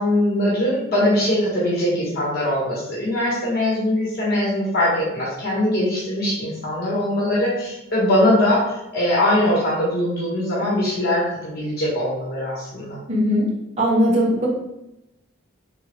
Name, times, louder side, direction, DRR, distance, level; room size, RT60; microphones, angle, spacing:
voice 1, 0.0-13.0, left 1 dB, 50° left, -6 dB, 1.3 m, -21 dB
voice 2, 13.1-13.5 13.8-14.5, equal, 30° right, -5 dB, 1.2 m, -19 dB
3.8 x 3.4 x 3.1 m, 0.89 s
head